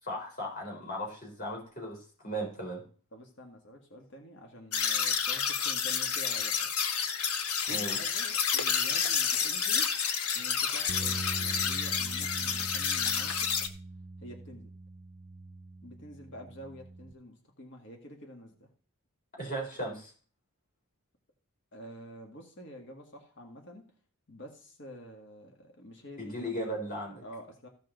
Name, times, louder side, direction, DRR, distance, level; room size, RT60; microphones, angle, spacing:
voice 1, 0.0-2.8 7.7-8.0 19.4-20.1 26.2-27.2, equal, 40° left, 0 dB, 3.9 m, -36 dB
voice 2, 3.1-6.7 7.7-9.9 10.3-13.5 14.2-14.7 15.8-18.7 21.7-23.9 24.3-26.9 27.2-27.7, equal, 55° left, 2 dB, 1.9 m, -48 dB
sound 1, 4.7-13.7, left 7 dB, 85° left, 1.1 m, -30 dB
sound 2, 10.9-17.1, right 2 dB, 30° right, 0.4 m, -42 dB
15.0 x 6.6 x 3.9 m, 0.41 s
head